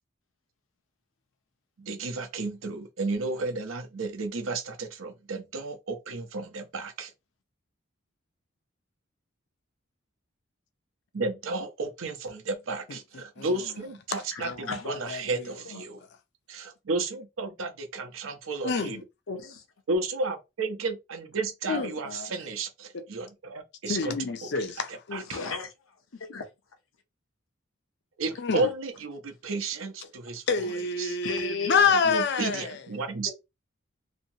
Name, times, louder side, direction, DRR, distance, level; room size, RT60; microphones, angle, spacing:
voice 1, 1.8-7.1 11.1-16.0 16.5-19.0 19.9-24.1 24.6-24.7 25.1-25.4 28.2-30.4 31.0-31.2 32.1-33.3, right 3 dB, 80° right, 0.7 m, -32 dB
voice 2, 12.9-13.5 14.1-14.7 15.1-15.4 18.6-19.0 21.7-22.3 23.9-25.0 28.4-28.7 30.5-32.8, left 5 dB, 55° left, 0.4 m, -28 dB
voice 3, 14.3-14.8 15.7-15.8 19.3-19.6 21.7-22.0 25.1-25.7 26.3-26.5 31.2-31.9, left 5 dB, 80° left, 0.8 m, -33 dB
2.8 x 2.7 x 2.8 m
head